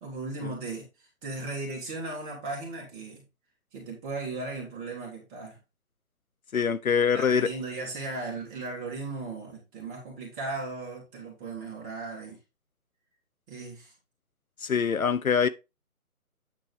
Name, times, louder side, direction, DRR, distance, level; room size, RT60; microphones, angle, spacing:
voice 1, 0.0-3.2 3.7-5.6 7.1-12.4 13.5-13.9, right 3 dB, 15° right, 2.6 m, -37 dB
voice 2, 6.5-7.5 14.6-15.5, left 6 dB, 70° left, 0.9 m, -24 dB
9.4 x 4.1 x 4.3 m
figure-of-eight pair, 155°, 44 cm